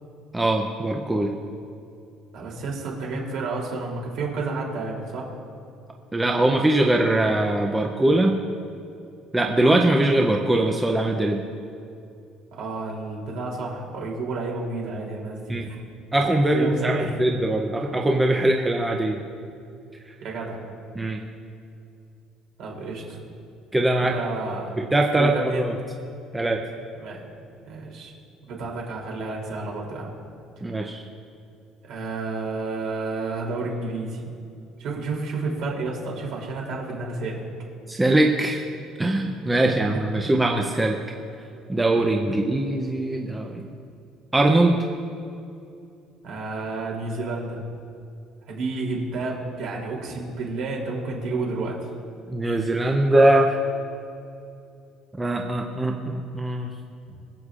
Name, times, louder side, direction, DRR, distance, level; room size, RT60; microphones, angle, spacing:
voice 1, 0.3-1.3 6.1-8.4 9.3-11.4 15.5-15.7 16.1-19.2 21.0-21.2 23.7-24.1 24.8-25.8 26.3-26.6 30.6-31.0 37.9-38.6 39.0-41.0 41.7-43.7 44.3-44.8 52.3-53.6 55.2-56.7, right 1 dB, 10° right, 1 dB, 0.5 m, -21 dB
voice 2, 2.3-5.3 12.5-15.8 16.5-17.2 20.2-20.6 22.6-23.2 24.0-24.7 25.2-25.6 26.9-27.2 27.6-28.1 28.5-30.1 31.8-34.2 34.8-37.4 46.2-47.6 48.5-51.8, right 3 dB, 60° right, -2 dB, 3.0 m, -30 dB
24.0 x 8.1 x 2.4 m, 2.5 s
cardioid pair, 165°, 0 cm